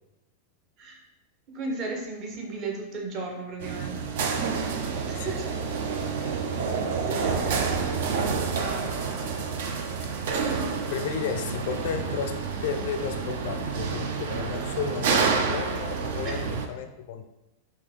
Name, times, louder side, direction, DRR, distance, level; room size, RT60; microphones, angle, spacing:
voice 1, 1.5-4.0 4.7-5.5 7.1-7.9 8.5-9.0 16.2-16.4, right 3 dB, 35° right, 2 dB, 0.9 m, -36 dB
sound 1, 3.6-16.7, right 5 dB, 55° right, 0.4 m, -28 dB
voice 2, 10.9-17.3, left 7 dB, 50° left, 6 dB, 0.4 m, -33 dB
4.7 x 2.8 x 3.3 m, 0.98 s
figure-of-eight pair, 90°, 0 cm